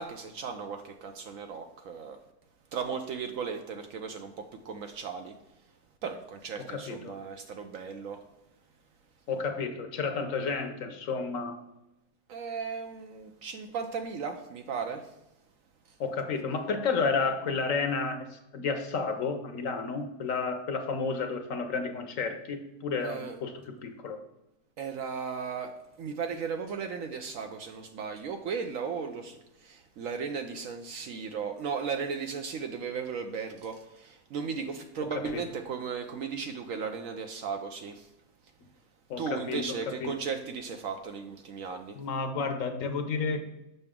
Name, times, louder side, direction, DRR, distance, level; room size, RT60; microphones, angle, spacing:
voice 1, 0.0-2.2 2.7-5.4 6.0-8.2 12.3-15.1 15.9-16.0 23.0-23.4 24.8-38.1 39.2-42.0, right 5 dB, 70° right, 6 dB, 0.9 m, -36 dB
voice 2, 6.6-7.2 9.3-11.6 16.0-24.2 35.3-35.4 39.1-39.7 40.0-40.1 41.9-43.4, left 4 dB, 60° left, 7 dB, 1.0 m, -31 dB
6.7 x 5.7 x 3.6 m, 0.93 s
omnidirectional pair, 1.7 m